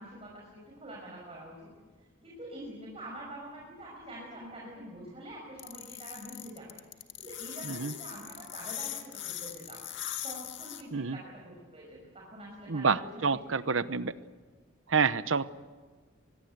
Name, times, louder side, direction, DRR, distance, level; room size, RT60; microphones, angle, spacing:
voice 1, 0.0-1.7 2.2-6.7 7.2-9.8 10.2-13.2 13.8-13.9, right 1 dB, 30° right, -3 dB, 5.7 m, -45 dB
sound 1, 5.6-10.8, left 12 dB, 65° left, 1.9 m, -40 dB
voice 2, 7.6-7.9 10.9-11.2 12.7-14.1 14.9-15.5, right 5 dB, 75° right, 14 dB, 0.9 m, -28 dB
25.0 x 21.0 x 8.1 m, 1.4 s
head